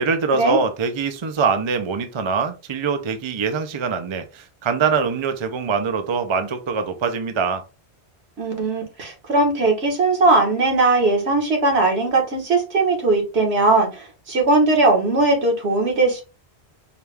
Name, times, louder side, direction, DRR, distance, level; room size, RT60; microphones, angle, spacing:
voice 1, 0.0-7.6, right 5 dB, 40° right, 0.4 m, -23 dB
voice 2, 8.4-16.2, right 2 dB, 70° right, 1.6 m, -19 dB
4.7 x 2.3 x 3.3 m
omnidirectional pair, 1.1 m